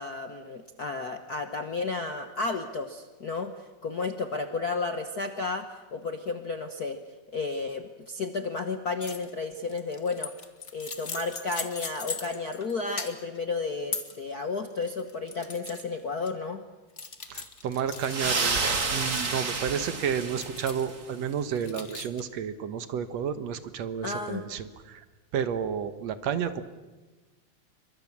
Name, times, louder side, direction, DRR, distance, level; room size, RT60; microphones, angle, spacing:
voice 1, 0.0-5.7 5.9-7.0 7.3-10.3 10.7-16.6 24.0-24.4, left 3 dB, 50° left, 7 dB, 1.1 m, -32 dB
sound 1, 9.0-9.3 9.6-12.7 13.0-13.4 13.9-14.2 14.7-15.8 16.3-16.4 17.0-18.1 19.1-19.8 20.4-21.0 21.6-22.2, left 4 dB, 30° left, 1.6 m, -38 dB
voice 2, 17.3-25.1 25.3-26.6, right 7 dB, 65° right, 11 dB, 2.2 m, -31 dB
sound 2, 18.0-21.0, right 4 dB, 30° right, 2.2 m, -30 dB
29.0 x 24.5 x 7.3 m, 1.2 s
omnidirectional pair, 3.3 m